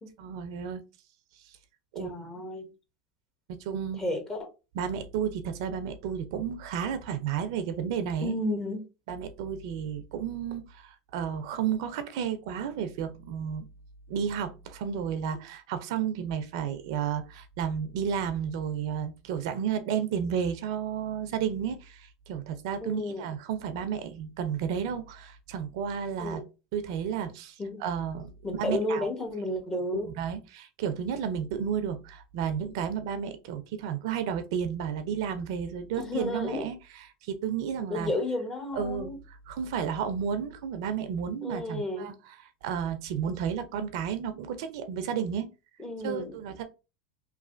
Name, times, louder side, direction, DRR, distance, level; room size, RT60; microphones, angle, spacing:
voice 1, 0.2-0.8 1.9-2.1 3.5-4.0 4.8-8.3 9.1-13.7 14.1-26.4 26.7-27.5 27.8-29.1 30.2-36.8 37.2-38.1 38.7-39.1 39.5-42.1 42.6-45.5 46.0-46.6, right 8 dB, 70° right, 0.5 m, -32 dB
voice 2, 1.9-2.7 4.0-4.5 8.2-8.8 22.8-23.3 26.2-26.4 27.6-27.8 28.4-30.1 36.0-36.7 37.8-39.2 41.4-42.1 45.8-46.4, left 1 dB, 20° left, 1.0 m, -32 dB
3.1 x 2.3 x 2.5 m
hypercardioid pair, 100°, 3 cm